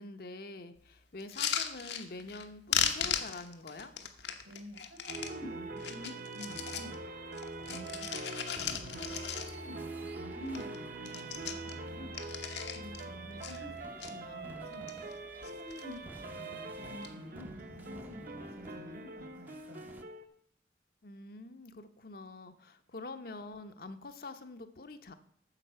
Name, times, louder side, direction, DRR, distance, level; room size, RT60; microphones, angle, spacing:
voice 1, 0.0-3.9 13.3-13.4 14.1-14.6 21.0-25.1, left 2 dB, 55° left, 8 dB, 0.8 m, -46 dB
sound 1, 1.2-2.4 2.7-5.3 5.8-6.9 7.3-9.8 10.1-10.2 10.5-10.8 11.0-13.0 13.4-14.1 14.6-15.2 15.4-16.0 16.8-17.1, left 8 dB, 75° left, 1.0 m, -37 dB
voice 2, 4.4-12.1 12.7-15.0 15.4-20.0, equal, 80° right, 1 dB, 3.7 m, -49 dB
sound 2, 5.1-20.3, right 3 dB, 50° right, 0.8 m, -44 dB
sound 3, 8.5-20.0, right 1 dB, 10° right, 0.5 m, -54 dB
9.0 x 7.3 x 5.6 m, 0.69 s
head